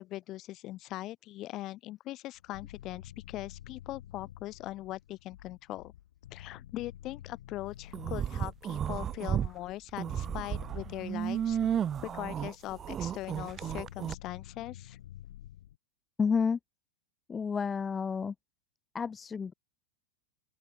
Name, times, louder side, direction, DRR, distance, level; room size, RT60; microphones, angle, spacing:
voice 1, 0.0-5.9 6.3-11.6 12.0-15.0, left 16 dB, 35° left, 4.0 m, -41 dB
sound 1, 2.3-15.8, left 12 dB, 60° left, 3.0 m, -50 dB
sound 2, 7.9-9.5 9.9-14.1, right 9 dB, 25° right, 0.8 m, -33 dB
voice 2, 16.2-16.6 17.3-18.3 18.9-19.5, left 6 dB, 15° left, 0.5 m, -30 dB
open air
figure-of-eight pair, 90°, 0 cm